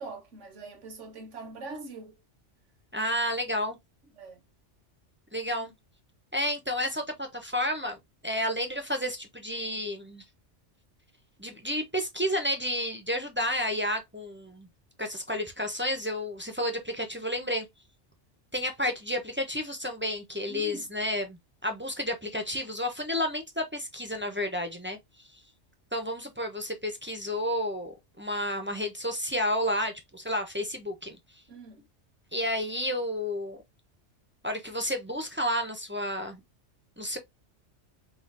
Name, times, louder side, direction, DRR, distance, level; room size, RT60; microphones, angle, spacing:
voice 1, 0.0-2.2 4.2-4.4 5.5-5.7 20.5-20.9 31.5-31.9, right 3 dB, 80° right, 1.3 m, -43 dB
voice 2, 2.9-3.8 5.3-5.7 6.3-8.0 8.2-10.2 11.4-14.7 15.0-17.7 18.5-25.0 25.9-31.2 32.3-33.6 34.4-36.4 37.0-37.2, left 1 dB, 15° right, 0.5 m, -31 dB
5.5 x 2.4 x 2.5 m
omnidirectional pair, 1.2 m